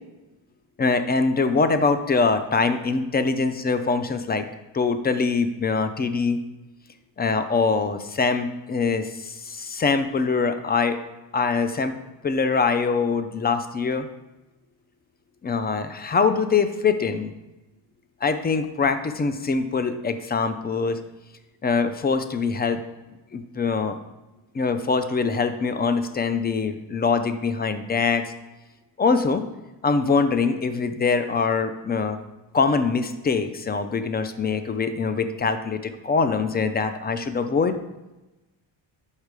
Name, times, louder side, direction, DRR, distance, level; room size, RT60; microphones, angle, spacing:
voice 1, 0.8-4.4 4.7-6.4 7.2-11.0 11.3-12.0 12.2-14.1 15.4-17.3 18.2-21.0 21.6-22.8 23.3-24.0 24.5-28.2 29.0-29.4 29.8-32.2 32.5-37.8, left 4 dB, 20° left, 10 dB, 0.4 m, -23 dB
5.4 x 5.2 x 4.8 m, 1.0 s
cardioid pair, 105°, 49 cm